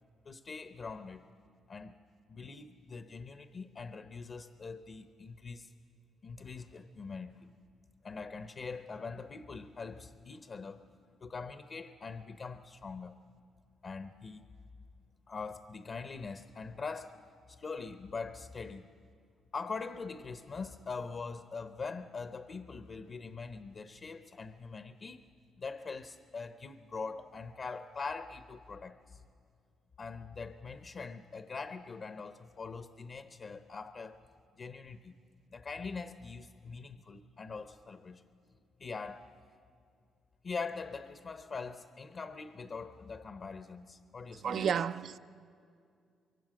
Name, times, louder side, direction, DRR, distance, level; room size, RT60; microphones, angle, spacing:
voice 1, 0.2-1.2 1.7-2.0 2.3-5.7 6.2-7.5 8.0-10.9 11.2-13.2 13.8-14.5 15.3-17.2 17.5-18.9 19.5-25.2 25.6-29.2 30.0-34.2 34.6-35.1 35.5-38.2 38.8-39.3 40.4-44.8, left 4 dB, 45° left, 0.9 m, -43 dB
voice 2, 44.4-45.2, right 8 dB, 60° right, 0.6 m, -31 dB
24.5 x 23.5 x 6.4 m
cardioid pair, 90°, 0 cm